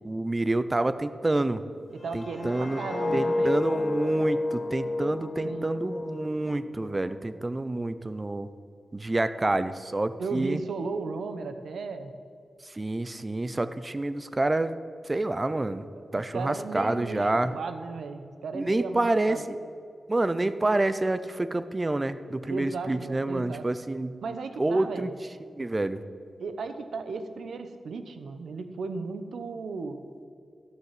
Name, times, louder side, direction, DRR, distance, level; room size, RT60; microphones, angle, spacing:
voice 1, 0.0-1.6 2.1-2.8 3.1-8.5 8.9-10.6 12.7-14.7 15.1-15.9 16.1-17.5 18.5-19.6 20.1-24.2 24.6-25.1 25.5-26.0, right 2 dB, 25° right, 13 dB, 0.5 m, -28 dB
voice 2, 1.9-3.5 5.4-5.7 10.2-12.1 16.1-19.4 22.5-23.7 24.2-25.1 26.4-30.0, right 4 dB, 90° right, 9 dB, 0.9 m, -35 dB
sound 1, 2.0-7.1 7.4-7.7, left 2 dB, 35° left, 0.3 m, -31 dB
12.5 x 6.6 x 7.5 m, 2.2 s
wide cardioid pair, 100°, 0 cm